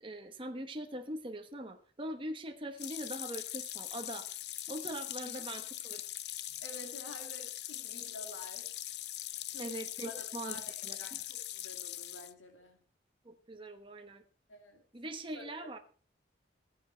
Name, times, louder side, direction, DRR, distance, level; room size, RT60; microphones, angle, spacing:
voice 1, 0.0-4.3 4.7-6.0 9.6-11.2 13.2-14.2 14.9-15.8, right 1 dB, 25° right, 4 dB, 1.1 m, -42 dB
sound 1, 2.8-12.3, left 14 dB, 60° left, 0.6 m, -41 dB
voice 2, 6.6-8.8 9.5-12.8 14.5-14.8 15.3-15.7, left 1 dB, 90° left, 4 dB, 2.3 m, -50 dB
19.0 x 7.8 x 4.4 m, 0.42 s
head